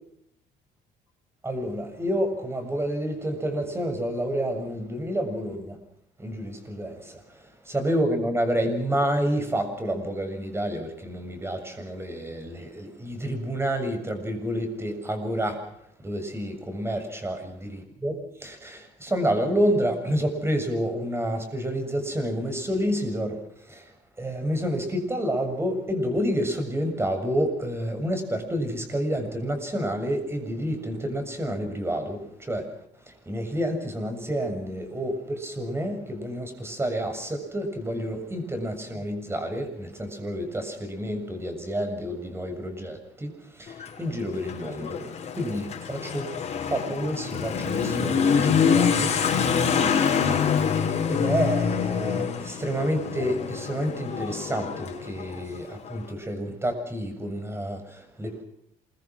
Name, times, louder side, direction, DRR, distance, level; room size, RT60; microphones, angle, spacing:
voice 1, 1.4-5.8 6.2-15.6 16.0-32.7 33.0-49.1 50.4-58.4, equal, 15° right, 7 dB, 7.3 m, -29 dB
Motorcycle / Accelerating revving vroom, 43.7-56.0, left 6 dB, 40° left, 6.1 m, -26 dB
27.0 x 23.5 x 6.2 m, 0.74 s
cardioid pair, 110°, 17 cm